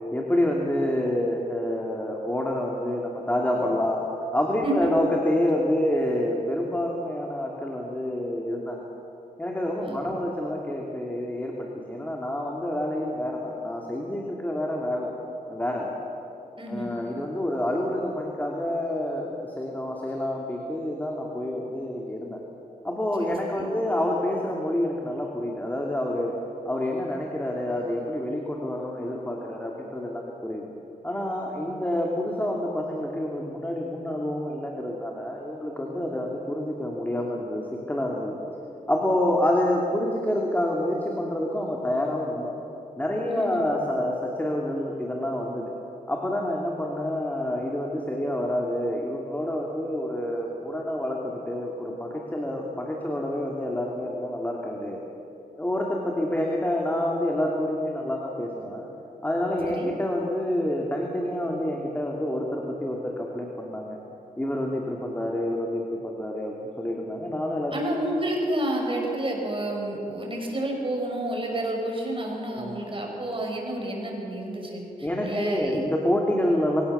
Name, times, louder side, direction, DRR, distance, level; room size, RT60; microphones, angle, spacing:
voice 1, 0.1-4.0 4.3-8.9 9.4-15.1 15.5-15.9 16.7-22.4 22.8-26.4 26.6-30.7 31.0-38.4 38.9-42.6 43.0-45.7 46.1-55.0 55.6-58.9 59.2-64.0 64.4-67.8 72.4-72.8 75.0-76.8, left 1 dB, 10° left, -1 dB, 2.7 m, -28 dB
voice 2, 9.8-10.2 16.6-16.9 23.2-23.7 43.3-43.6 59.7-59.9 67.7-75.8, right 1 dB, 35° right, 0 dB, 5.8 m, -30 dB
22.5 x 17.0 x 6.9 m, 2.8 s
cardioid pair, 65°, 15 cm